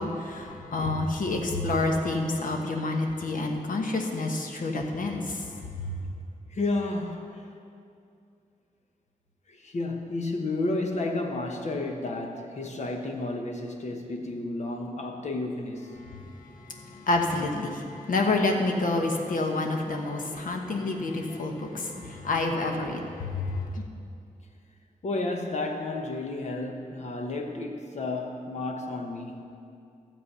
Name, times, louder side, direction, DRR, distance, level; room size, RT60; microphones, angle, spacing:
voice 1, 0.0-6.0 16.0-23.8, left 2 dB, 75° left, 3 dB, 1.1 m, -29 dB
voice 2, 6.5-7.5 9.5-15.9 25.0-29.5, left 2 dB, 55° left, 3 dB, 1.1 m, -32 dB
12.5 x 7.5 x 5.5 m, 2.5 s
wide cardioid pair, 160°, 14 cm